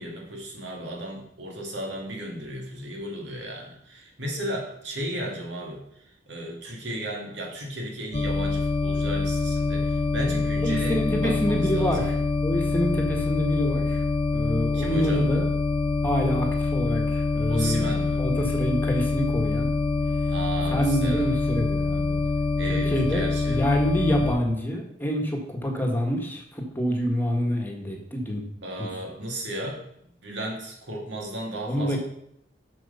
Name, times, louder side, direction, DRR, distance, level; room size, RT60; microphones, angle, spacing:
voice 1, 0.0-12.1 14.7-15.3 17.5-18.2 20.3-21.3 22.6-23.6 28.6-32.0, right 1 dB, 70° right, 0 dB, 2.2 m, -34 dB
sound 1, 8.1-24.4, left 3 dB, 35° left, 0.6 m, -25 dB
voice 2, 10.6-12.1 12.4-14.0 14.3-15.4 16.0-17.9 18.2-19.7 20.7-22.2 22.7-28.4 28.8-28.9 31.7-32.0, equal, 10° left, 1 dB, 1.5 m, -27 dB
7.7 x 6.2 x 5.6 m, 0.73 s
head